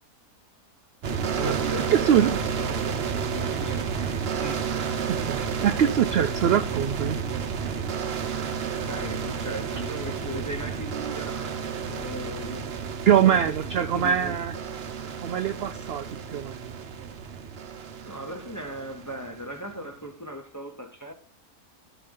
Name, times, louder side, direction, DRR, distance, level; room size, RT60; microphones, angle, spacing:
sound 1, 1.0-19.7, right 6 dB, 50° right, 0.9 m, -31 dB
voice 1, 1.3-4.1 4.4-4.7 5.4-5.5 8.9-14.4 18.0-21.1, equal, 15° left, 0.7 m, -38 dB
voice 2, 1.9-2.4 5.1-7.2 13.1-14.5 15.2-16.1 16.3-16.7, right 9 dB, 75° right, 0.5 m, -23 dB
12.5 x 4.8 x 3.8 m
omnidirectional pair, 1.6 m